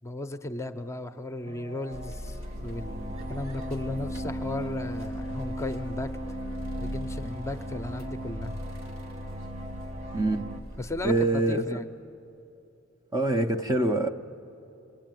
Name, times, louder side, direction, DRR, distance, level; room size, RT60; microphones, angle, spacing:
voice 1, 0.0-6.1 6.8-8.5 10.8-11.9, left 2 dB, 15° left, 7 dB, 0.7 m, -35 dB
sound 1, 1.4-10.6, right 1 dB, 35° right, 1.3 m, -38 dB
sound 2, 1.9-11.2, left 1 dB, 75° right, 2.5 m, -40 dB
voice 2, 11.0-11.8 13.1-14.1, right 2 dB, 20° right, 6 dB, 0.7 m, -25 dB
28.0 x 20.5 x 9.2 m, 2.9 s
head